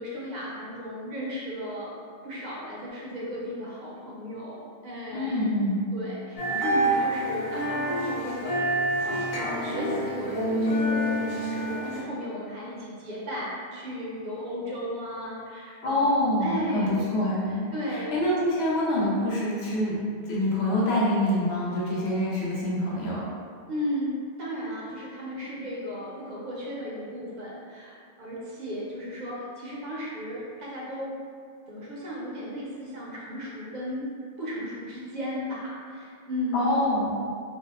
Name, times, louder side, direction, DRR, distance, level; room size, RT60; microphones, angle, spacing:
voice 1, 0.0-1.9 2.2-5.6 5.9-9.4 9.6-16.0 16.4-17.1 17.7-18.1 23.7-31.1 31.7-34.1 34.4-36.7, equal, 55° right, -6 dB, 0.6 m, -35 dB
voice 2, 5.1-5.8 15.8-17.6 17.9-20.0 20.3-23.2 36.5-37.1, left 1 dB, 70° left, -6 dB, 0.9 m, -25 dB
sound 1, 6.4-12.0, right 1 dB, 45° left, 0.5 m, -27 dB
2.6 x 2.0 x 2.3 m, 2.2 s
omnidirectional pair, 1.1 m